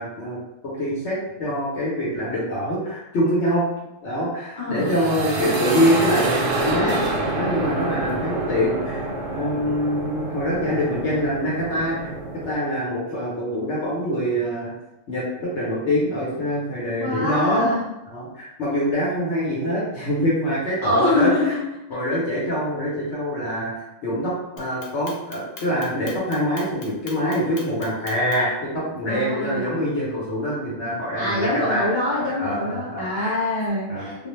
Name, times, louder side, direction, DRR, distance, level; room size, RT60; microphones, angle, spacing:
voice 1, 0.0-3.6 4.0-7.0 7.2-9.0 9.3-12.1 12.4-14.7 15.1-17.7 18.1-21.5 21.9-23.7 24.0-31.9 32.4-33.3 33.9-34.1, equal, 60° left, -7 dB, 1.0 m, -24 dB
voice 2, 4.6-4.9 17.0-17.9 20.8-21.6 29.1-29.7 31.2-34.3, left 2 dB, 25° left, -7 dB, 0.6 m, -24 dB
sound 1, 4.8-12.5, right 2 dB, 65° right, 0.8 m, -27 dB
Clock, 24.6-28.6, left 3 dB, 90° left, 1.1 m, -40 dB
2.4 x 2.1 x 3.0 m, 0.95 s
omnidirectional pair, 1.4 m